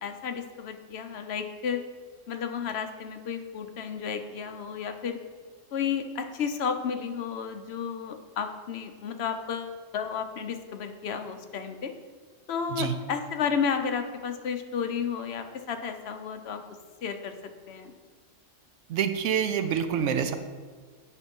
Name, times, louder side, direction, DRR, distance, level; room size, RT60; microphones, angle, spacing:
voice 1, 0.0-1.8 2.3-5.2 5.7-11.9 12.5-16.6 17.0-17.3 17.7-17.9, left 6 dB, 60° left, 6 dB, 0.9 m, -32 dB
voice 2, 18.9-20.3, right 8 dB, 75° right, 9 dB, 0.9 m, -26 dB
8.4 x 4.5 x 5.3 m, 1.5 s
omnidirectional pair, 1.3 m